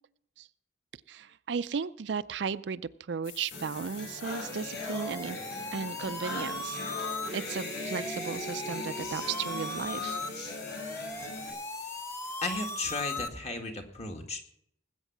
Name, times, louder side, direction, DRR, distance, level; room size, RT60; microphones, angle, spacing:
voice 1, 1.1-5.4 5.7-10.2, right 6 dB, 65° right, 15 dB, 0.4 m, -35 dB
sound 1, 3.2-13.0, left 8 dB, 85° left, 1.5 m, -49 dB
sound 2, 3.5-11.5, left 1 dB, 55° left, 5.3 m, -40 dB
sound 3, 4.3-13.3, left 2 dB, 15° left, 0.9 m, -39 dB
voice 2, 12.4-14.4, left 2 dB, 35° left, 3 dB, 1.9 m, -35 dB
19.5 x 8.2 x 6.0 m, 0.71 s
head